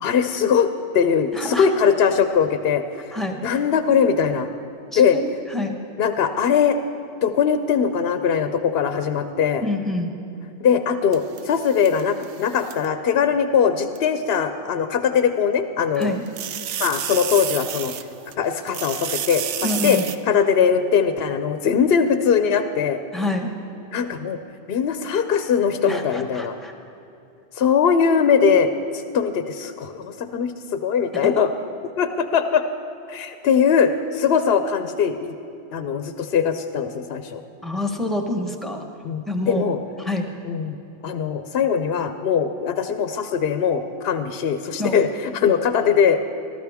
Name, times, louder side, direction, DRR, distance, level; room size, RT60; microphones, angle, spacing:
voice 1, 0.0-0.7 0.9-3.1 3.4-4.5 4.9-5.2 6.0-6.8 7.2-9.6 10.6-16.2 16.8-17.9 18.4-20.0 20.3-23.0 23.9-24.4 24.7-26.6 27.5-31.5 32.0-32.6 33.1-35.4 35.7-37.4 39.0-39.8 40.4-40.8 41.0-46.2, left 7 dB, 65° left, 9 dB, 0.8 m, -21 dB
voice 2, 1.3-1.7 3.1-3.4 4.9-5.7 9.6-10.1 16.0-16.2 19.6-20.0 23.1-23.6 25.8-26.7 31.2-31.3 37.6-38.8 39.3-39.7 40.0-40.3 44.8-45.0, left 1 dB, ahead, 3 dB, 1.0 m, -26 dB
sound 1, 11.1-12.9 14.0-14.1 15.9-18.3 18.7-20.2, right 10 dB, 90° right, 0.9 m, -30 dB
19.0 x 13.0 x 3.5 m, 2.8 s
omnidirectional pair, 1.1 m